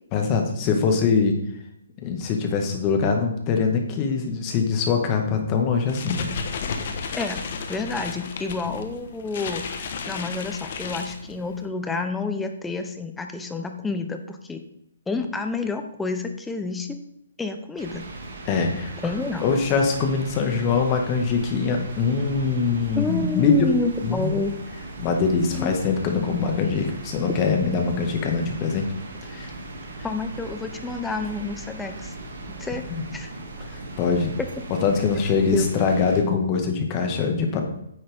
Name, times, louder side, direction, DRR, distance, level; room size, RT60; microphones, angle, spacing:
voice 1, 0.1-1.4 2.0-6.3 18.5-18.9 19.4-23.7 24.0-24.3 25.0-28.9 29.3-29.5 32.9-33.0 33.7-34.4 34.8-37.6, left 5 dB, 30° left, 3 dB, 1.8 m, -23 dB
sound 1, 5.7-11.7, left 5 dB, 50° left, 1.3 m, -33 dB
voice 2, 7.7-14.6 15.1-17.0 17.4-18.1 19.0-19.5 23.0-24.6 25.5-25.7 30.0-32.1 32.6-32.9 33.1-33.3 35.5-35.7, left 3 dB, 10° left, 5 dB, 0.9 m, -29 dB
sound 2, 17.8-36.2, right 2 dB, 50° right, 2.3 m, -38 dB
10.0 x 7.7 x 3.6 m, 0.78 s
figure-of-eight pair, 130°, 0 cm